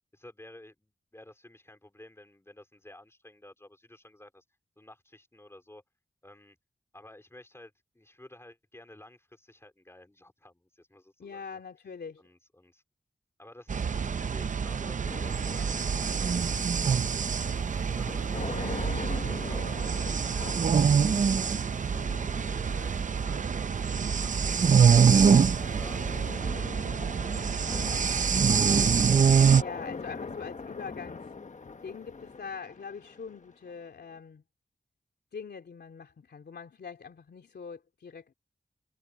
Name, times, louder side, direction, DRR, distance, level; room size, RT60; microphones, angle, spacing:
voice 1, 0.1-4.4 4.8-5.8 6.2-6.6 6.9-11.6 12.2-12.8 13.4-16.3 17.7-18.9 19.2-21.8 22.5-26.0 26.3-28.6, left 1 dB, 15° left, 3.8 m, -53 dB
voice 2, 11.2-12.2 29.5-31.3 31.8-34.4 35.3-38.3, left 6 dB, 85° left, 3.2 m, -43 dB
sound 1, 13.7-29.6, right 6 dB, 50° right, 0.5 m, -25 dB
sound 2, 15.1-34.1, left 4 dB, 45° left, 1.4 m, -43 dB
wide cardioid pair, 85°, 17 cm